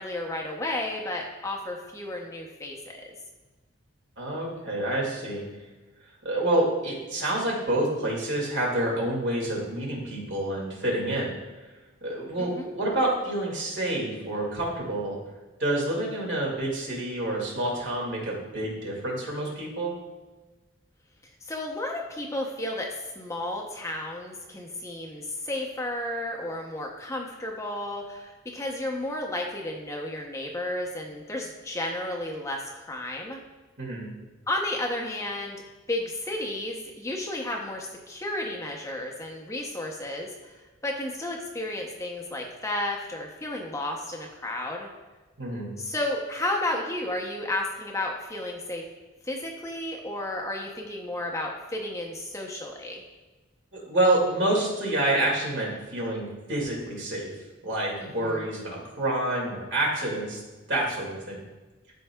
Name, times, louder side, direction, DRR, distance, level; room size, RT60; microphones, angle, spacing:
voice 1, 0.0-2.8 3.1-3.2 12.4-12.7 21.4-22.9 23.2-33.4 34.5-35.6 35.9-40.5 40.8-44.9 45.8-48.8 49.2-53.0 58.0-58.5, left 1 dB, 15° left, 0 dB, 0.6 m, -32 dB
voice 2, 4.2-5.4 6.2-11.3 12.0-15.2 15.6-19.9 33.8-34.1 45.4-45.7 53.7-57.3 57.6-60.4 60.7-61.4, right 1 dB, 60° right, -2 dB, 2.1 m, -28 dB
13.0 x 4.5 x 2.2 m, 1.2 s
head